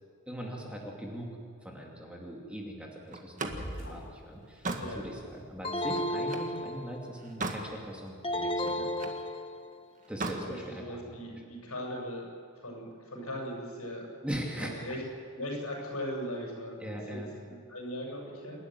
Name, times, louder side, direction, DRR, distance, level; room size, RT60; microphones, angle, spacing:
voice 1, 0.3-1.3 1.6-8.9 10.1-11.4 14.2-14.8 16.8-17.3, equal, 5° right, -1 dB, 2.5 m, -40 dB
Slam, 3.1-6.6 7.0-7.7 8.1-9.2 10.0-10.5, right 2 dB, 35° right, 1.7 m, -38 dB
sound 1, 3.5-4.2 4.8-5.7, equal, 55° left, 4.0 m, -43 dB
sound 2, 5.6-7.2 8.2-9.8, left 1 dB, 25° left, 1.1 m, -33 dB
voice 2, 10.5-12.3 12.6-14.1 14.8-15.0 15.3-16.8 17.1-18.6, equal, 75° left, -1 dB, 8.0 m, -39 dB
28.0 x 12.0 x 9.6 m, 2.1 s
head